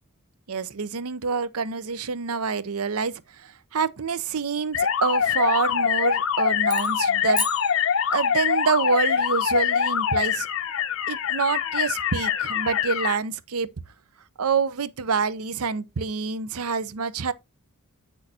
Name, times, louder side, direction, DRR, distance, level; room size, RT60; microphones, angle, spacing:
voice 1, 0.5-7.4 8.1-10.5 11.1-13.7 14.4-17.3, right 5 dB, 75° right, 0.7 m, -27 dB
sound 1, 4.7-13.2, left 8 dB, 65° left, 0.7 m, -24 dB
sound 2, 6.6-8.6, left 5 dB, 20° left, 0.6 m, -34 dB
8.8 x 6.3 x 2.8 m
head